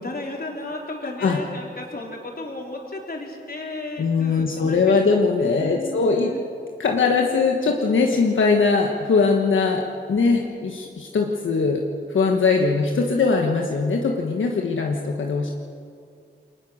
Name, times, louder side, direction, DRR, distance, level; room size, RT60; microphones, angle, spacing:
voice 1, 0.0-5.0 5.4-6.4, left 2 dB, 50° left, -1 dB, 4.2 m, -34 dB
voice 2, 4.0-6.3 6.8-9.8 10.1-11.8 12.1-15.5, left 4 dB, 85° left, 1 dB, 1.5 m, -21 dB
22.0 x 20.0 x 6.5 m, 2.3 s
cardioid pair, 65°, 20 cm